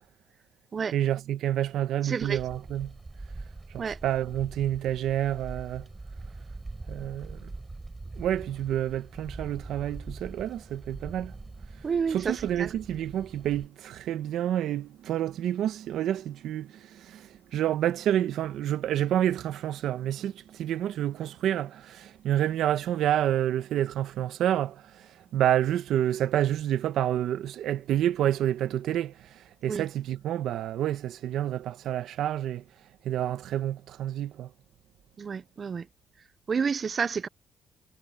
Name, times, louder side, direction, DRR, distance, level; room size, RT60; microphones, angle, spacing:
voice 1, 0.9-2.9 3.7-5.9 6.9-7.5 8.2-11.3 12.1-24.8 25.3-29.1 29.6-32.6 33.0-34.5, right 11 dB, 80° right, 1.0 m, -28 dB
voice 2, 2.0-2.4 3.8-4.0 11.8-12.7 29.7-29.8 35.2-35.9 36.5-37.3, right 6 dB, 45° right, 0.5 m, -29 dB
sound 1, 2.2-13.7, right 2 dB, 20° right, 3.7 m, -43 dB
cardioid pair, 90°, 0 cm